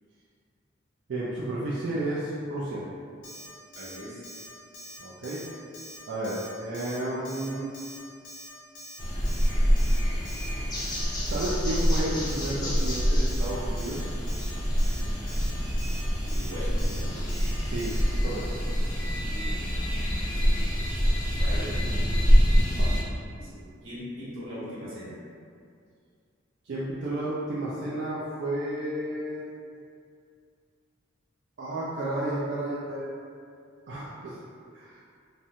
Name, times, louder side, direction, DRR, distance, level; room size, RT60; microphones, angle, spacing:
voice 1, 1.1-2.8 5.0-5.4 6.1-7.7 11.3-14.2 17.6-17.9 18.2-18.6 22.8-22.9 26.6-29.5 31.6-33.2 33.9-34.4 34.7-35.0, right 1 dB, 60° right, -8 dB, 0.4 m, -32 dB
Alarm, 3.2-3.5 3.7-4.0 4.2-4.5 4.7-5.0 5.2-5.5 5.7-6.0 6.2-6.5 6.7-7.0 7.3-7.5 7.7-8.0 8.2-8.5 8.8-9.0 9.3-9.5 9.8-10.0 10.3-10.5 10.8-11.0 11.3-11.5 11.8-12.0 12.3-12.5 12.8-13.0 13.3-13.5 13.8-14.0 14.3-14.5 14.8-15.0 15.3-15.5 15.8-16.0 16.3-16.5 16.8-17.0 17.3-17.5 17.8-18.0, equal, 80° left, 0.5 m, -44 dB
voice 2, 3.7-4.2 16.2-17.1 19.3-19.8 21.4-21.9 23.3-25.2, equal, 90° right, -10 dB, 1.0 m, -40 dB
sound 1, 9.0-23.0, equal, 20° left, 0.4 m, -25 dB
2.6 x 2.0 x 2.7 m, 2.3 s
head